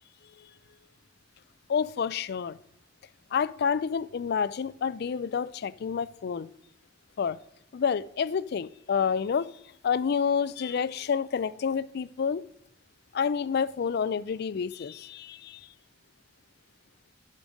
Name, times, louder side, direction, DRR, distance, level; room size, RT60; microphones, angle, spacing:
voice 1, 1.7-2.6 3.3-6.5 7.2-7.4 7.7-9.5 9.8-12.4 13.1-15.6, left 6 dB, 55° left, 0.4 m, -28 dB
12.0 x 5.2 x 6.3 m
head